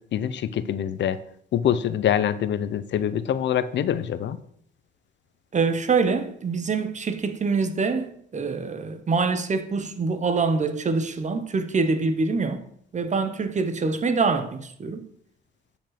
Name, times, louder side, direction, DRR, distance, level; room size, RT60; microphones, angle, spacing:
voice 1, 0.1-1.2 1.5-4.4, left 9 dB, 65° left, 0.7 m, -25 dB
voice 2, 5.5-12.6 12.9-15.0, right 4 dB, 35° right, 1.1 m, -25 dB
9.1 x 5.2 x 5.9 m
cardioid pair, 90°, 20 cm